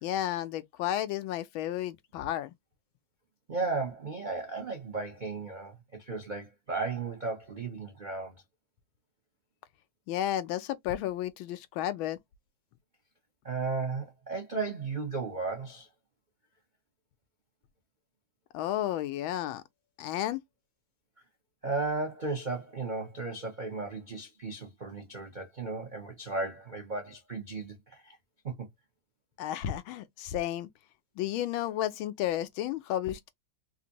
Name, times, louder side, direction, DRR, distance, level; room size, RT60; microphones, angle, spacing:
voice 1, 0.0-2.5 10.1-12.2 18.5-19.6 20.0-20.4 29.4-30.7 31.2-33.3, left 12 dB, 80° left, 1.4 m, -32 dB
voice 2, 3.5-8.4 13.4-15.9 21.6-28.2 28.4-28.7, right 3 dB, 85° right, 0.4 m, -35 dB
3.9 x 2.5 x 2.8 m
omnidirectional pair, 2.2 m